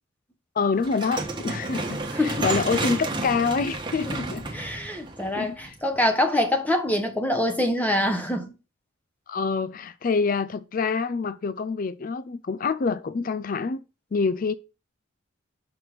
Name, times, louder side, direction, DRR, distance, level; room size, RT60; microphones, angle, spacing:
voice 1, 0.6-4.4 5.4-5.6 9.3-13.8 14.1-14.5, left 4 dB, 40° left, 0.4 m, -26 dB
sound 1, 0.8-6.0, right 2 dB, 20° right, 1.3 m, -31 dB
voice 2, 2.1-2.5 4.1-4.2 4.5-8.5, left 1 dB, 10° left, 1.1 m, -25 dB
6.1 x 5.9 x 5.0 m
head